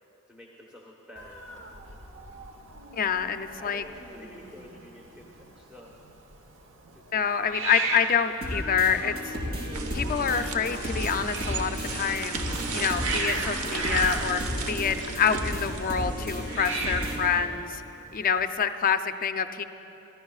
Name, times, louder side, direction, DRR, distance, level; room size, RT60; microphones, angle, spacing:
voice 1, 0.3-2.4 3.6-5.9 6.9-7.6, left 1 dB, 5° right, -2 dB, 1.1 m, -50 dB
Hiss, 1.1-18.5, right 3 dB, 60° right, 1.1 m, -38 dB
voice 2, 2.9-3.8 7.1-9.1 9.9-14.4 14.7-17.8 18.1-19.6, left 7 dB, 40° left, 10 dB, 0.4 m, -27 dB
sound 1, 8.4-17.4, equal, 45° right, 3.3 m, -34 dB
sound 2, 9.7-17.2, right 4 dB, 85° right, 1.0 m, -36 dB
27.0 x 13.5 x 2.4 m, 3.0 s
head